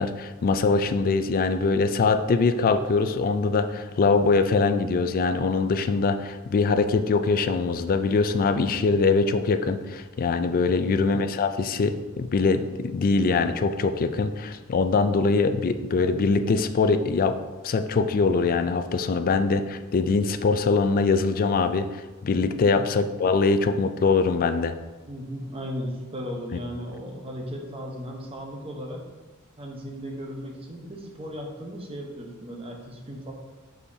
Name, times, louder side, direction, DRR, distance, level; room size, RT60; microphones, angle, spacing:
voice 1, 0.0-17.4 17.6-24.8, left 4 dB, 40° left, 10 dB, 0.3 m, -23 dB
voice 2, 25.1-29.0 29.6-33.3, equal, 25° right, 0 dB, 0.9 m, -36 dB
6.3 x 5.5 x 2.7 m, 1.2 s
head